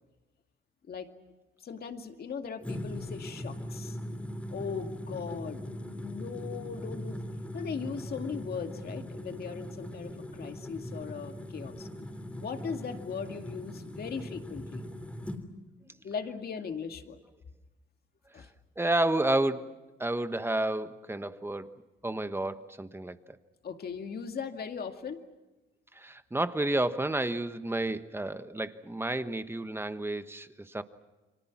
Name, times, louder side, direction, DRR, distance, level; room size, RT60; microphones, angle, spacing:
voice 1, 1.6-4.0 4.5-5.6 5.9-7.2 7.5-11.9 12.4-14.8 16.0-17.2 18.3-18.5 23.6-25.2, left 6 dB, 50° left, 6 dB, 2.3 m, -38 dB
sound 1, 2.6-15.4, equal, 5° left, 3.5 m, -40 dB
voice 2, 18.8-19.7 20.0-23.2 25.9-30.8, right 1 dB, 10° right, 10 dB, 1.3 m, -31 dB
30.0 x 24.5 x 6.0 m, 1.1 s
cardioid pair, 90°, 20 cm